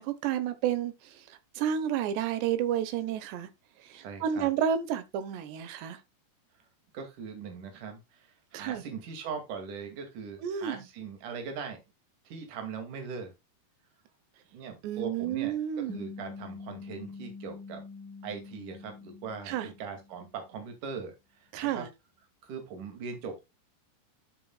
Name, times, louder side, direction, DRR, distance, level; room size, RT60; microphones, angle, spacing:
voice 1, 0.0-3.5 3.8-6.0 8.5-8.8 10.4-10.8 14.8-16.1 19.5-19.7 21.5-21.9, right 9 dB, 80° right, 3.3 m, -31 dB
voice 2, 3.9-4.5 6.9-11.8 12.3-13.3 14.5-15.6 15.9-17.8 18.2-21.9 22.4-23.4, right 5 dB, 50° right, 3.6 m, -40 dB
sound 1, 15.9-20.5, left 4 dB, 5° left, 0.4 m, -45 dB
11.5 x 7.6 x 2.3 m
omnidirectional pair, 4.9 m